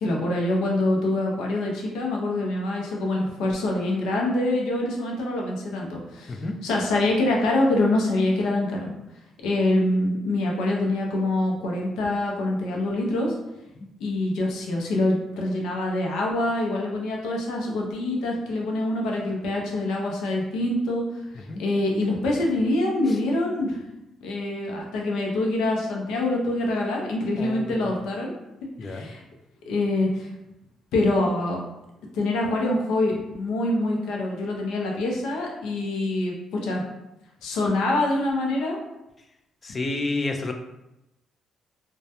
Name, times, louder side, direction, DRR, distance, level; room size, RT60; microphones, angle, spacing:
voice 1, 0.0-8.9 9.4-13.3 14.0-21.0 21.3-23.8 24.2-28.3 28.8-29.2 29.7-30.3 30.9-31.6 32.1-36.8 37.4-38.8, left 2 dB, 90° left, -1 dB, 0.5 m, -25 dB
voice 2, 27.4-27.8 28.8-29.1 39.6-40.5, left 2 dB, 35° left, 4 dB, 0.3 m, -29 dB
2.2 x 2.1 x 2.8 m, 0.91 s
cardioid pair, 90°, 0 cm